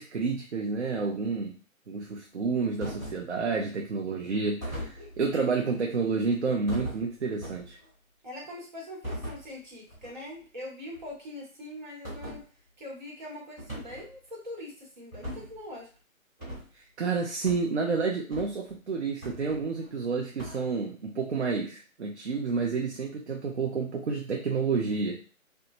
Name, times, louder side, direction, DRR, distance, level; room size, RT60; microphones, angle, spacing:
voice 1, 0.0-1.5 1.9-7.8 16.7-25.2, right 4 dB, 55° right, 0 dB, 0.5 m, -30 dB
sound 1, 2.8-3.3 4.6-5.4 6.7-7.9 9.0-9.4 9.9-10.1 10.4-10.5 10.9-11.1 12.0-12.4 13.6-14.1 15.1-15.6 16.4-16.7 17.5-17.7 18.3-18.7 19.2-19.9 20.4-20.6, equal, 10° right, 1.3 m, -39 dB
voice 2, 8.2-12.4 12.8-15.9, left 1 dB, 35° right, -3 dB, 1.1 m, -42 dB
2.9 x 2.1 x 2.5 m, 0.39 s
figure-of-eight pair, 165°, 42 cm